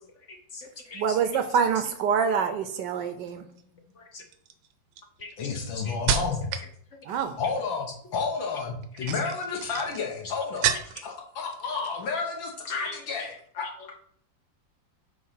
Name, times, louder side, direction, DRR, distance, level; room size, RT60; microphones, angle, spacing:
voice 1, 0.3-1.0 4.1-4.2 5.2-5.9 9.0-9.1, left 3 dB, 50° left, 3 dB, 0.9 m, -43 dB
voice 2, 0.9-3.4 7.0-7.4, right 6 dB, 70° right, 9 dB, 1.1 m, -26 dB
sound 1, 3.2-3.6 4.3-6.7 7.0-7.5 8.8-11.2 11.5-12.2 12.4-12.7, right 8 dB, 85° right, 1.5 m, -31 dB
voice 3, 3.3-3.8 5.4-6.5 7.4-13.7, left 4 dB, 75° left, 0 dB, 1.9 m, -31 dB
7.8 x 3.2 x 5.7 m, 0.62 s
omnidirectional pair, 2.2 m